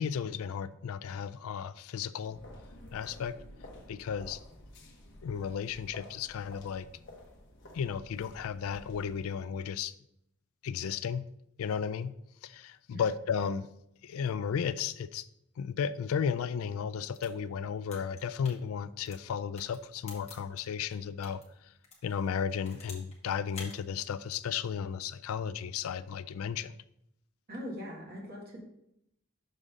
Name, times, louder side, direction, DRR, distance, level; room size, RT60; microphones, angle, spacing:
voice 1, 0.0-2.4 2.9-3.4 3.9-4.4 5.2-6.9 7.7-9.9 10.6-11.3 11.6-12.1 12.4-13.7 14.0-15.3 15.6-21.4 22.0-26.7, left 7 dB, 75° left, 0.3 m, -34 dB
sound 1, 2.2-9.2, left 1 dB, 55° left, 1.0 m, -51 dB
sound 2, 17.0-21.4 21.8-23.2 23.5-23.8, left 4 dB, 30° left, 1.4 m, -50 dB
voice 2, 27.5-28.6, equal, 45° right, 1.8 m, -41 dB
6.5 x 3.7 x 5.3 m
head